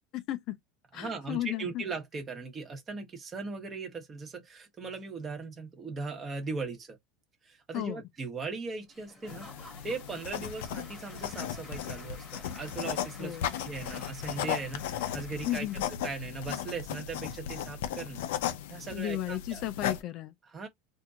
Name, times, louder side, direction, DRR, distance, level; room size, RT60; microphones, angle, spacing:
voice 1, 0.1-0.6 0.9-1.8 7.7-8.0 13.2-13.5 15.5-15.9 18.9-20.3, left 13 dB, 40° left, 0.5 m, -34 dB
voice 2, 0.9-7.0 7.4-18.2 18.7-19.6 20.4-20.7, right 4 dB, 20° right, 1.1 m, -39 dB
Applause / Crowd, 8.9-16.2, left 1 dB, 10° left, 1.4 m, -53 dB
sound 1, 9.3-20.0, left 10 dB, 85° left, 0.6 m, -36 dB
4.3 x 2.6 x 2.4 m
supercardioid pair, 165°, 0 cm